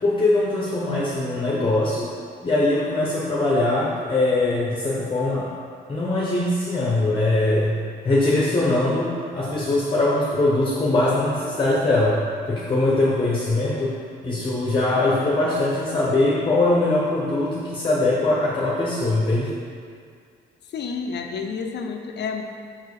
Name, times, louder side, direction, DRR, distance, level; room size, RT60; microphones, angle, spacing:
voice 1, 0.0-2.1 2.4-5.5 5.9-7.7 8.0-12.2 12.5-13.9 14.2-19.6, left 2 dB, 25° left, -5 dB, 1.0 m, -21 dB
voice 2, 20.7-22.4, left 5 dB, 60° left, 4 dB, 0.6 m, -30 dB
5.9 x 4.7 x 4.7 m, 2.2 s
cardioid pair, 90°, 20 cm